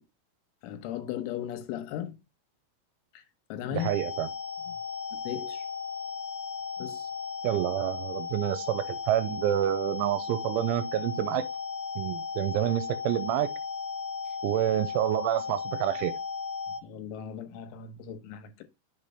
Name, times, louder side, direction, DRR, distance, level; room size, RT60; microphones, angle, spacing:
voice 1, 0.6-2.2 3.1-3.2 3.5-3.9 4.7-4.8 5.1-5.7 6.8-7.1 16.7-18.6, left 10 dB, 80° left, 3.4 m, -37 dB
voice 2, 3.7-4.3 7.4-11.5 12.0-13.5 14.4-16.1, right 13 dB, 85° right, 3.0 m, -28 dB
sound 1, 3.8-16.8, left 5 dB, 60° left, 2.0 m, -36 dB
6.9 x 3.2 x 5.6 m
omnidirectional pair, 5.6 m